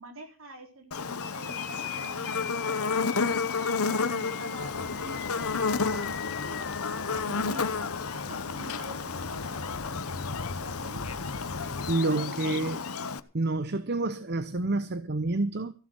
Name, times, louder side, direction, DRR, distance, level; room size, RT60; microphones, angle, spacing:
voice 1, 0.0-3.8 4.1-5.4 6.4-6.8 7.1-11.0, right 2 dB, 65° right, 4.3 m, -47 dB
Buzz, 0.9-13.2, left 4 dB, 85° left, 1.0 m, -32 dB
sound 1, 1.2-9.1, left 9 dB, 50° left, 1.4 m, -42 dB
sound 2, 4.6-11.9, left 3 dB, 70° left, 1.3 m, -39 dB
voice 2, 11.9-12.9 13.3-15.7, right 2 dB, 50° right, 0.9 m, -28 dB
15.5 x 7.8 x 8.0 m
head